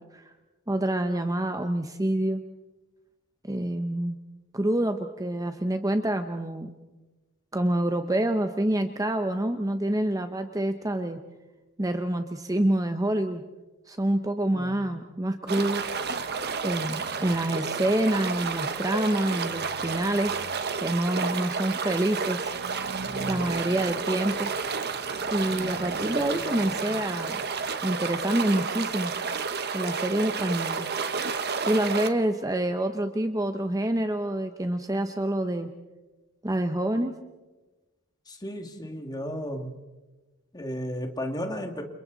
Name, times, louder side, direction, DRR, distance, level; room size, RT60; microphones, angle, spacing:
voice 1, 0.7-2.4 3.4-4.2 4.5-6.7 7.5-11.2 11.8-13.4 13.9-15.9 16.6-20.4 20.8-22.5 23.3-24.5 25.3-27.4 27.8-29.1 29.7-30.9 31.6-35.7 36.4-37.1, right 1 dB, 15° right, 7 dB, 0.9 m, -27 dB
sound 1, 15.5-32.1, right 5 dB, 50° right, 1.3 m, -31 dB
voice 2, 38.3-39.7 40.5-41.8, equal, 20° left, 4 dB, 2.2 m, -34 dB
30.0 x 28.0 x 4.0 m, 1.2 s
head